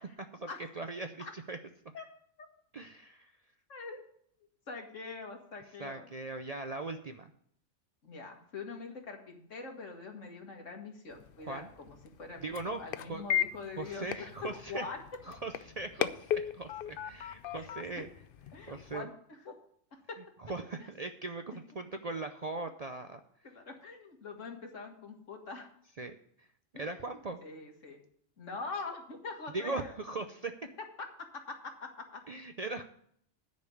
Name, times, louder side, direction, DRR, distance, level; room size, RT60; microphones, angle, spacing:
voice 1, 0.0-0.5 0.8-1.6 2.7-3.3 5.8-7.3 11.5-11.7 12.4-13.2 13.8-14.9 15.3-18.1 18.7-19.1 20.4-23.2 26.0-26.5 26.7-27.4 29.5-30.5 32.3-32.8, right 3 dB, 45° right, 7 dB, 0.5 m, -39 dB
voice 2, 3.7-4.0 4.7-6.1 8.0-15.0 17.5-18.0 18.5-19.5 19.9-20.2 20.8-20.9 21.5-21.6 23.4-25.7 26.7-27.0 27.4-28.0 28.4-29.9 31.0-32.2, left 4 dB, 80° left, 3 dB, 2.1 m, -44 dB
sound 1, 11.1-19.0, left 10 dB, 60° left, 0.6 m, -38 dB
10.0 x 5.3 x 8.4 m, 0.65 s
omnidirectional pair, 1.3 m